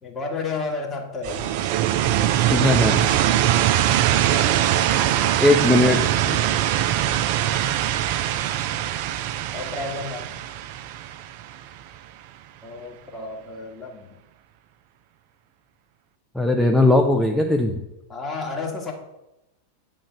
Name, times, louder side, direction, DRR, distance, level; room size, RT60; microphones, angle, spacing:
voice 1, 0.0-1.5 9.5-10.4 12.6-14.2 18.1-18.9, left 3 dB, 20° left, 0 dB, 1.6 m, -31 dB
sound 1, 1.2-12.0, right 12 dB, 45° right, 0.4 m, -22 dB
voice 2, 2.5-3.1 5.4-6.4 16.3-17.8, left 2 dB, ahead, 2 dB, 0.5 m, -19 dB
8.8 x 3.8 x 5.1 m, 0.92 s
figure-of-eight pair, 90°, 0 cm